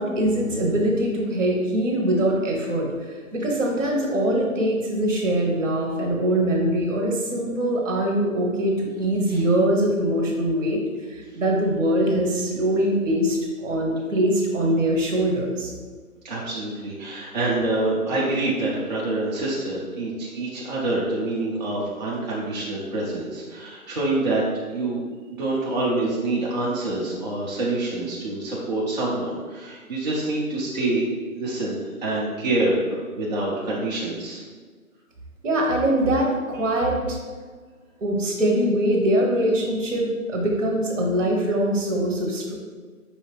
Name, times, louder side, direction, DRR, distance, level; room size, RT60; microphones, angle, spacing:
voice 1, 0.0-2.9 3.3-10.8 11.1-15.7 35.4-37.2 38.0-42.5, right 1 dB, 60° right, 0 dB, 1.3 m, -23 dB
voice 2, 16.2-24.4 24.7-25.0 25.3-31.1 31.3-34.4, right 2 dB, 30° right, -7 dB, 0.6 m, -26 dB
5.4 x 2.8 x 3.4 m, 1.5 s
hypercardioid pair, 150°, 43 cm